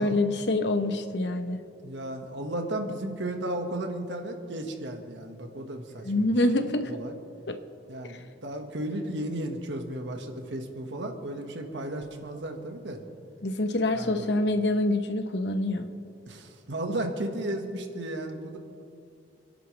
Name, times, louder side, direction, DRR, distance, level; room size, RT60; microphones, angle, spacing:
voice 1, 0.0-1.6 6.0-7.0 7.5-7.6 13.4-15.9, left 2 dB, 70° left, 8 dB, 1.0 m, -26 dB
voice 2, 1.8-7.2 7.9-13.0 13.9-14.3 16.2-18.6, right 1 dB, 80° right, 3 dB, 1.7 m, -34 dB
29.0 x 11.0 x 3.4 m, 2.5 s
head